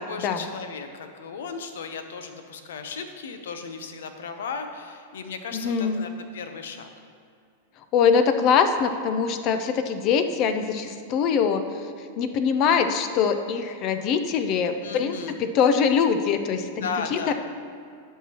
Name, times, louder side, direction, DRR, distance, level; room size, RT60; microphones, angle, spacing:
voice 1, 0.0-6.9 14.8-15.4 16.8-17.3, left 5 dB, 80° left, 7 dB, 0.7 m, -35 dB
voice 2, 5.5-6.1 7.9-11.6 12.2-17.3, left 6 dB, 45° left, 8 dB, 0.5 m, -23 dB
11.5 x 5.6 x 3.0 m, 2.3 s
hypercardioid pair, 120°, 0 cm